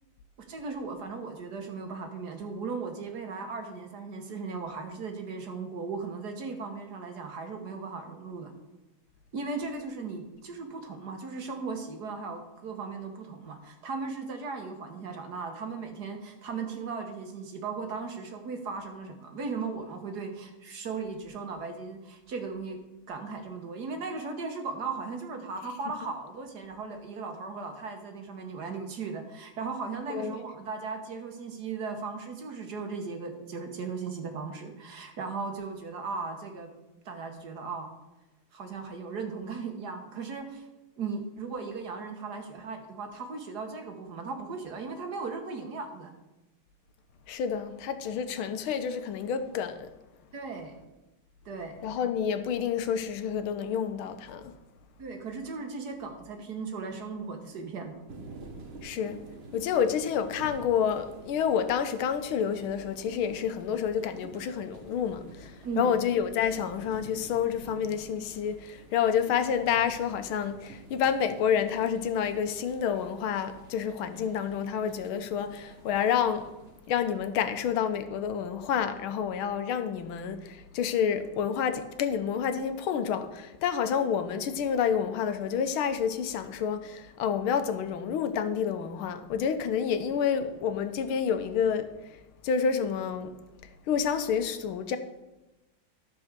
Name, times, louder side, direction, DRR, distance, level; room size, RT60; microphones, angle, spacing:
voice 1, 0.5-8.5 9.3-22.8 23.1-36.7 37.1-37.9 38.5-40.7 41.0-46.1 50.3-50.8 51.5-51.8 55.0-58.0 65.6-66.0, right 4 dB, 55° right, 1.7 m, -37 dB
voice 2, 47.3-49.9 51.8-54.5 58.8-59.2 59.5-76.5 76.9-92.2 92.4-93.3 93.6-95.0, left 7 dB, 90° left, 1.6 m, -29 dB
sound 1, 58.1-77.0, right 2 dB, 40° right, 1.1 m, -50 dB
13.0 x 4.8 x 6.6 m
omnidirectional pair, 2.2 m